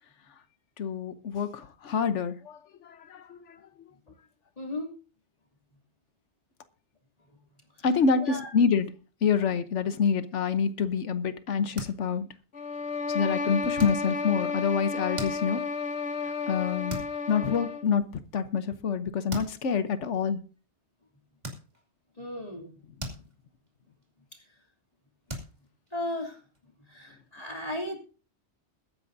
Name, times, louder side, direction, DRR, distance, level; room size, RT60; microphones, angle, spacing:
voice 1, 0.8-3.9 7.8-8.9 9.2-12.3 13.1-15.6 16.2-17.0 17.3-20.4, left 6 dB, 85° left, 1.2 m, -27 dB
voice 2, 4.6-4.9 8.2-8.5 22.2-22.7 25.9-26.4 26.9-28.0, left 1 dB, 35° left, 3.0 m, -35 dB
sound 1, 11.6-12.4 12.7-13.0 13.7-14.4 14.9-15.8 16.3-16.6 16.9-17.2 17.6-17.7 18.8-18.9 19.3-19.7 20.3-20.5 21.4-22.0 22.5-23.7 24.0-24.3 24.6-24.7 25.3-26.6, equal, 35° right, 2.6 m, -40 dB
sound 2, 12.5-17.9, left 4 dB, 65° left, 1.3 m, -32 dB
21.5 x 9.6 x 2.6 m
omnidirectional pair, 1.2 m